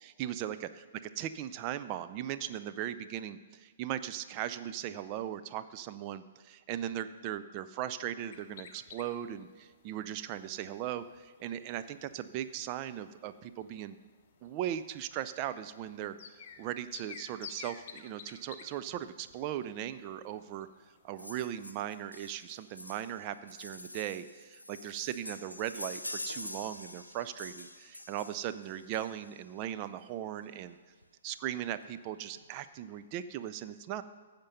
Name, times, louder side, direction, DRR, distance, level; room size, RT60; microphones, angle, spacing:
voice 1, 0.2-0.7 1.2-14.0 14.4-20.7 21.0-30.8 31.2-34.0, right 11 dB, 35° right, 12 dB, 0.5 m, -38 dB
sound 1, 8.3-21.2, left 6 dB, 45° left, 0.8 m, -53 dB
sound 2, 21.2-29.5 30.6-30.7 31.0-31.1 31.3-31.5 31.8-32.4 32.9-33.0, left 1 dB, 85° left, 0.6 m, -46 dB
15.0 x 5.2 x 5.6 m, 1.4 s
figure-of-eight pair, 120°, 0 cm